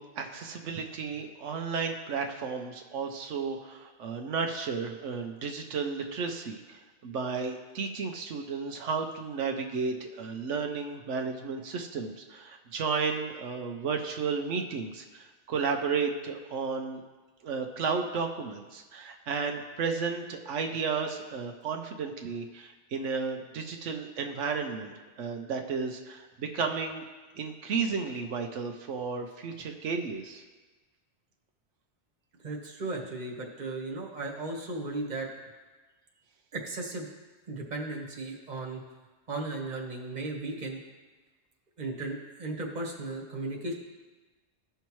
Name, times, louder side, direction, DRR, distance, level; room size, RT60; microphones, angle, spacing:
voice 1, 0.0-17.0 17.4-27.0 27.4-30.4, right 5 dB, 85° right, 4 dB, 1.1 m, -33 dB
voice 2, 32.4-35.3 36.5-37.1 37.5-38.8 39.3-40.8 41.8-43.7, right 2 dB, 40° right, 0 dB, 1.4 m, -36 dB
15.5 x 5.7 x 3.1 m, 1.2 s
omnidirectional pair, 1.2 m